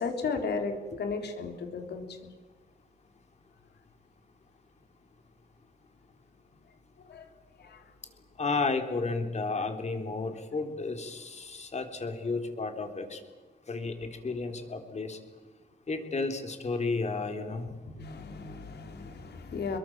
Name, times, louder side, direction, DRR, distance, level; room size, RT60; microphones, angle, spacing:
voice 1, 0.0-2.2 7.1-7.2 7.6-7.8 17.9-19.8, left 4 dB, 80° left, 5 dB, 3.7 m, -35 dB
voice 2, 8.4-13.2 13.7-15.2 15.9-17.7, left 3 dB, 40° left, 5 dB, 3.6 m, -32 dB
27.5 x 22.0 x 7.4 m, 1.3 s
cardioid pair, 100°, 17 cm